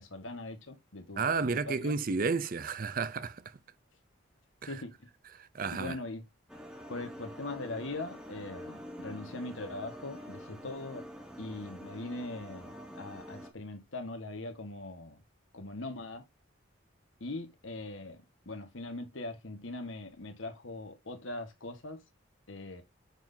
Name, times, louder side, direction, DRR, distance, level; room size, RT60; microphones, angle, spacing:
voice 1, 0.0-2.0 4.7-5.1 5.7-6.3 6.9-11.0 11.4-15.2 15.5-16.2 17.2-22.0 22.5-22.8, left 2 dB, 75° left, 1.5 m, -41 dB
voice 2, 1.2-3.4 4.6-4.7 5.4-5.9, right 4 dB, 45° right, 0.5 m, -32 dB
sound 1, 6.5-13.5, equal, 5° right, 0.9 m, -46 dB
8.9 x 3.9 x 2.7 m
head